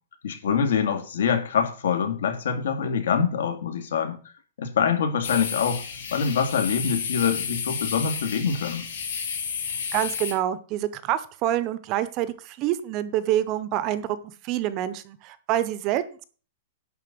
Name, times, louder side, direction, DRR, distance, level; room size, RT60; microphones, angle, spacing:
voice 1, 0.2-4.2 4.6-5.8 6.1-8.9, left 6 dB, 75° left, 2.4 m, -25 dB
sound 1, 5.2-10.3, left 6 dB, 60° left, 5.1 m, -32 dB
voice 2, 9.9-14.2 14.4-16.2, right 12 dB, 25° right, 0.6 m, -27 dB
11.0 x 4.3 x 7.6 m
supercardioid pair, 180°, 0 cm